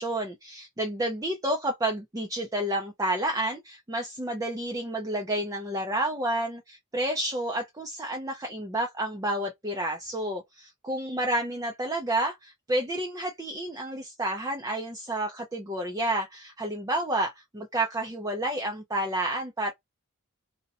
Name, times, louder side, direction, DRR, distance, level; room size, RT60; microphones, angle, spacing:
voice 1, 0.0-19.7, right 1 dB, 15° right, 0.4 m, -30 dB
2.7 x 2.1 x 2.4 m
head